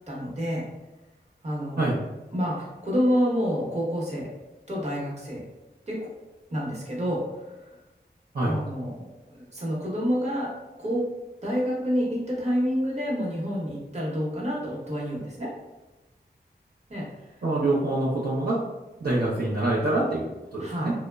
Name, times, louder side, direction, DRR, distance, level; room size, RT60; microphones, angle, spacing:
voice 1, 0.1-0.6 1.4-1.9 2.3-4.3 4.7-5.4 5.9-6.1 6.5-7.2 8.4-9.0 9.3-10.5 10.8-11.0 11.4-15.5 16.9-17.0 20.6-20.9, equal, 40° right, -4 dB, 0.9 m, -28 dB
voice 2, 17.4-18.6 19.0-20.9, right 2 dB, 60° right, -7 dB, 0.6 m, -25 dB
2.9 x 2.1 x 2.2 m, 1.1 s
wide cardioid pair, 60°, 18 cm